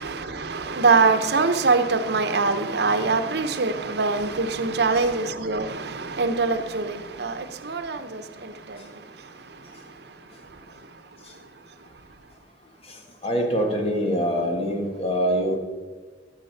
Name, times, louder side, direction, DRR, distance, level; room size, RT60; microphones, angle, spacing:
voice 1, 0.0-8.8, right 4 dB, 65° right, 0.9 m, -23 dB
voice 2, 13.2-15.6, equal, 35° left, 1.8 m, -24 dB
13.5 x 7.4 x 5.8 m
head